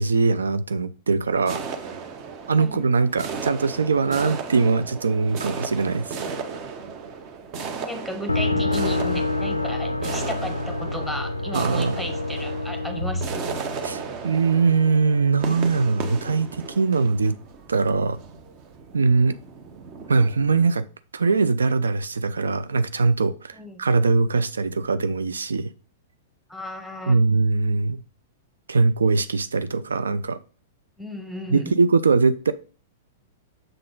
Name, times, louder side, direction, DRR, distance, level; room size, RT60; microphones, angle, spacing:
voice 1, 0.0-1.6 2.5-6.2 11.5-12.0 13.8-17.3 17.7-18.2 18.9-19.4 20.1-20.8 21.1-25.7 27.1-28.0 28.7-30.4 31.5-32.5, right 4 dB, 75° right, 0.3 m, -21 dB
sound 1, 1.5-20.7, right 5 dB, 35° right, 0.8 m, -35 dB
voice 2, 7.7-13.5 23.6-23.8 26.5-27.2 31.0-31.8, equal, ahead, 1.1 m, -34 dB
sound 2, 8.3-14.2, left 2 dB, 90° left, 0.3 m, -27 dB
6.7 x 3.8 x 3.7 m
figure-of-eight pair, 100°, 0 cm